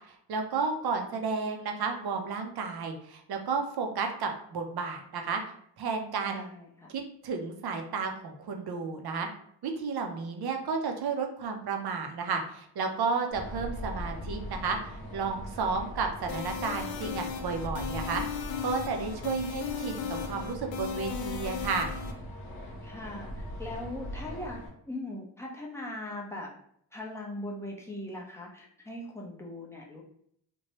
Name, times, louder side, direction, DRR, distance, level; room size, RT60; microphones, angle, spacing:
voice 1, 0.1-5.4 5.8-6.5 6.9-9.3 9.6-18.2 18.6-21.9, right 5 dB, 55° right, 4 dB, 0.6 m, -32 dB
voice 2, 6.2-6.9 22.8-26.5 26.9-30.0, left 1 dB, 5° left, -3 dB, 0.5 m, -40 dB
sound 1, 13.3-24.7, equal, 55° left, 1.0 m, -40 dB
sound 2, 16.3-22.1, left 7 dB, 80° left, 0.6 m, -36 dB
2.9 x 2.2 x 2.9 m, 0.67 s
cardioid pair, 115°, 45 cm